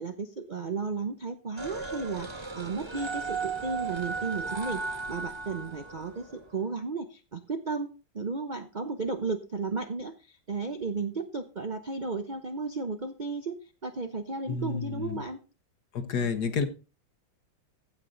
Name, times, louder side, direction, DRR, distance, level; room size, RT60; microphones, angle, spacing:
voice 1, 0.0-7.9 8.1-13.5 13.8-15.4, right 4 dB, 60° right, 7 dB, 0.5 m, -34 dB
sound 1, 1.6-6.4, right 4 dB, 20° right, 1.0 m, -35 dB
voice 2, 14.5-15.2 15.9-16.7, left 5 dB, 60° left, 9 dB, 1.6 m, -30 dB
15.5 x 5.8 x 3.9 m, 0.32 s
omnidirectional pair, 2.2 m